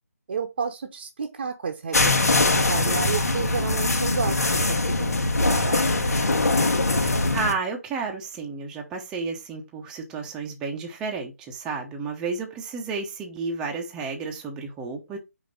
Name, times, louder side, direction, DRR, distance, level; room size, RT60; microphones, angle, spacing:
voice 1, 0.3-4.6 4.9-5.1 5.4-6.0, right 5 dB, 40° right, 0.9 m, -31 dB
sound 1, 1.9-7.5, left 2 dB, 75° left, 1.3 m, -22 dB
voice 2, 6.9-15.2, right 4 dB, 10° right, 0.8 m, -32 dB
5.1 x 4.1 x 5.2 m
figure-of-eight pair, 160°, 9 cm